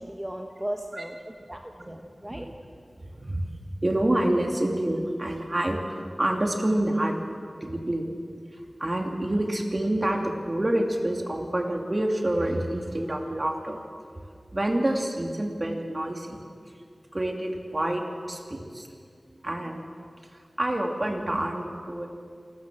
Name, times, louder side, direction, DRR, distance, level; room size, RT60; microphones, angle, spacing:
voice 1, 0.0-2.5, right 1 dB, 15° right, 3 dB, 1.3 m, -36 dB
voice 2, 3.1-3.5 3.8-7.2 7.6-8.1 8.8-13.8 14.5-16.4 17.1-18.0 18.3-18.9 19.3-19.8 20.6-22.1, right 1 dB, 40° right, 2 dB, 2.6 m, -27 dB
27.5 x 13.0 x 7.5 m, 2.3 s
wide cardioid pair, 50°, 0 cm